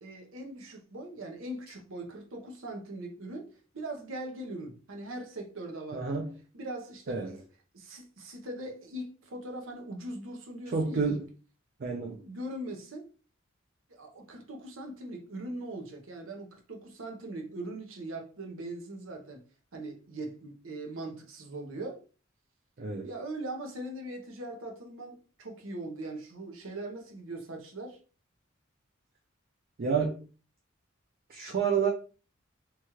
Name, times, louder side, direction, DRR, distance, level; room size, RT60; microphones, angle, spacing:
voice 1, 0.0-3.5 3.7-6.2 6.5-7.4 7.7-11.2 12.2-13.1 13.9-19.4 19.7-22.0 23.0-28.0, right 1 dB, 85° right, 0.8 m, -40 dB
voice 2, 5.9-6.3 7.1-7.4 10.7-11.2 11.8-12.2 22.8-23.1 29.8-30.2 31.3-31.9, right 5 dB, 50° right, 0.5 m, -29 dB
2.9 x 2.3 x 3.0 m
head